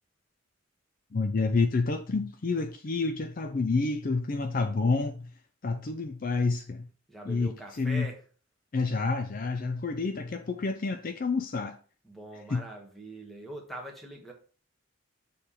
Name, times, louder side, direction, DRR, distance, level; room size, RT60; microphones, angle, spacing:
voice 1, 1.1-5.3 5.6-6.9 7.3-8.1 8.7-11.8 12.5-12.6, left 3 dB, 40° left, 0.4 m, -29 dB
voice 2, 7.1-8.2 12.0-14.3, right 1 dB, ahead, 1.4 m, -43 dB
6.8 x 3.2 x 5.6 m
head